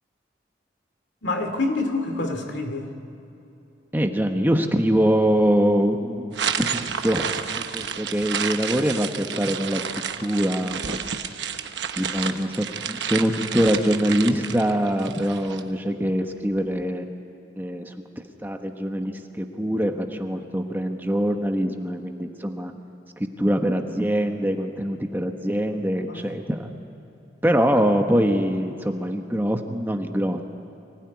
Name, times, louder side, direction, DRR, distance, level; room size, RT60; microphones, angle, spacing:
voice 1, 1.2-2.9 26.1-26.4, left 2 dB, 75° left, 6 dB, 2.4 m, -27 dB
voice 2, 3.9-6.3 6.6-9.9 10.2-11.1 12.0-17.0 17.6-17.9 18.4-22.7 23.2-26.7 27.4-30.4, equal, 10° right, 4 dB, 1.1 m, -24 dB
sound 1, 6.3-15.6, right 7 dB, 75° right, 1.0 m, -30 dB
24.5 x 16.5 x 9.6 m, 2.9 s
head